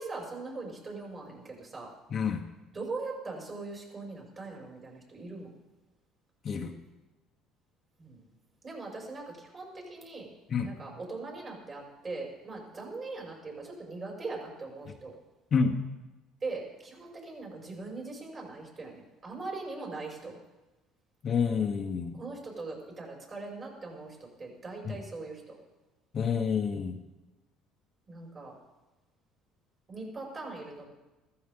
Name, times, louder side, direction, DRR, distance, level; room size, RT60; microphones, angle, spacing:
voice 1, 0.0-1.9 2.7-5.5 8.0-8.3 8.6-10.3 10.6-15.1 16.4-20.4 22.2-25.6 28.1-28.5 29.9-30.8, right 3 dB, 35° right, -1 dB, 6.2 m, -41 dB
voice 2, 21.2-22.2 24.8-24.9 26.1-26.9, left 6 dB, 40° left, 4 dB, 1.2 m, -28 dB
15.5 x 14.5 x 3.9 m, 1.1 s
cardioid pair, 105°, 0 cm